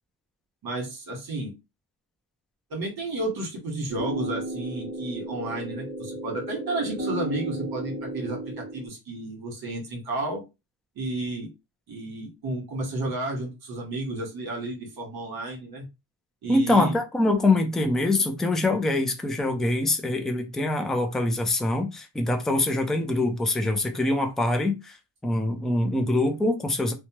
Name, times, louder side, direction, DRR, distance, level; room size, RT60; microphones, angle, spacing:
voice 1, 0.6-1.5 2.7-10.4 10.9-11.5 11.9-15.9 16.4-16.9, right 2 dB, 50° right, 1.5 m, -32 dB
sound 1, 3.9-8.9, right 1 dB, 25° right, 1.2 m, -34 dB
voice 2, 16.5-25.0 25.2-26.9, left 2 dB, ahead, 0.3 m, -24 dB
2.7 x 2.2 x 2.9 m
cardioid pair, 115°, 46 cm